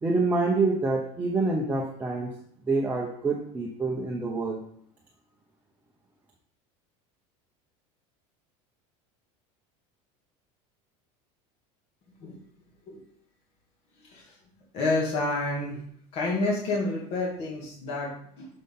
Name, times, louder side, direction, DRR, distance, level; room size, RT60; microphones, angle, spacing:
voice 1, 0.0-2.3 2.7-4.6, right 3 dB, 10° right, -2 dB, 0.8 m, -26 dB
voice 2, 14.7-15.8 16.1-18.5, left 2 dB, 40° left, -4 dB, 1.9 m, -29 dB
6.7 x 5.9 x 3.7 m, 0.65 s
cardioid pair, 165°, 15 cm